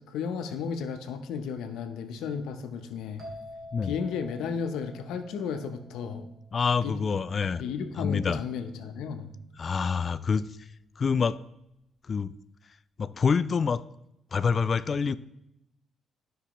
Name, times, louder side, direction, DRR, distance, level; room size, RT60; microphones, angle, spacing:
voice 1, 0.0-3.2 3.8-6.3 6.8-7.0 7.6-9.3 14.9-15.0, left 6 dB, 85° left, 8 dB, 0.7 m, -34 dB
sound 1, 3.2-6.8, left 1 dB, 45° right, 2.3 m, -47 dB
voice 2, 6.5-7.6 8.0-8.4 9.6-10.5 11.0-11.4 12.1-12.3 13.0-13.8 14.3-15.2, left 5 dB, 45° left, 14 dB, 0.3 m, -26 dB
12.0 x 5.5 x 3.0 m, 0.85 s
cardioid pair, 90°, 0 cm